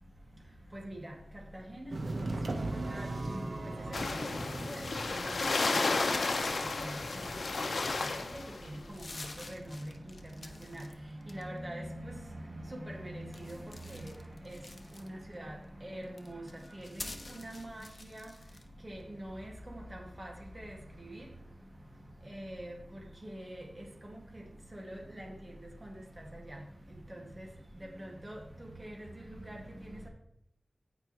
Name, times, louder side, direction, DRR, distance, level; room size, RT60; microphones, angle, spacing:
voice 1, 0.7-1.1 1.8-1.9 2.3-2.6 2.9-3.5 4.5-4.8 5.1-5.3 5.6-5.8 8.1-8.3 8.7-9.0 9.5-9.9 10.7-10.9 11.3-12.2 12.5-13.6 13.9-14.1 14.4-14.6 15.0-15.6 15.8-16.4 16.7-17.1 17.3-18.3 18.8-20.7 21.0-21.2 22.3-22.7 23.2-23.9 24.3-24.4 24.7-25.3 25.8-25.9 26.5-26.6 27.1-27.5 28.0-28.4 28.8-29.1 29.5-29.6, right 1 dB, 30° right, -1 dB, 2.2 m, -43 dB
sound 1, 1.9-8.8, right 2 dB, 70° right, 1.1 m, -40 dB
sound 2, 3.9-8.7, left 3 dB, 80° left, 0.8 m, -32 dB
sound 3, 3.9-4.6 6.0-7.9 8.4-8.5 8.8-10.9 11.2-11.7 13.3-15.3 16.0-18.7, left 2 dB, 55° left, 1.0 m, -48 dB
16.0 x 5.4 x 3.2 m, 0.75 s
wide cardioid pair, 60°, 0 cm